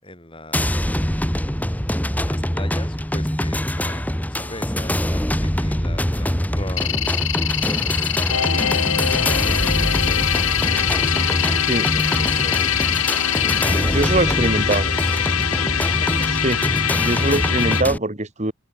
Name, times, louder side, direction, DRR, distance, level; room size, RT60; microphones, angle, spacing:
voice 1, 0.0-1.0 2.2-7.3 7.6-10.5 11.1-12.8 13.6-16.3, left 1 dB, 25° left, 7.4 m, -38 dB
sound 1, 0.5-18.0, equal, 5° left, 2.0 m, -24 dB
sound 2, 6.8-13.6, left 13 dB, 60° left, 1.4 m, -25 dB
sound 3, 8.3-17.8, left 9 dB, 80° left, 1.6 m, -24 dB
voice 2, 13.8-14.8 16.4-16.6 17.0-18.5, right 2 dB, 30° right, 2.1 m, -22 dB
head